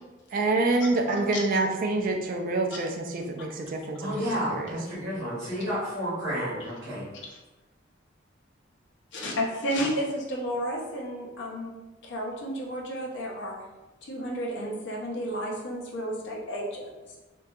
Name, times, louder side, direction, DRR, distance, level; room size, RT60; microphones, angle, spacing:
voice 1, 0.3-4.7, right 2 dB, 45° right, 3 dB, 0.3 m, -27 dB
voice 2, 4.0-7.0, equal, 65° right, -9 dB, 0.9 m, -31 dB
voice 3, 9.1-11.7 12.0-13.5 14.0-17.2, equal, 65° left, -2 dB, 0.6 m, -32 dB
2.7 x 2.3 x 2.3 m, 1.1 s
head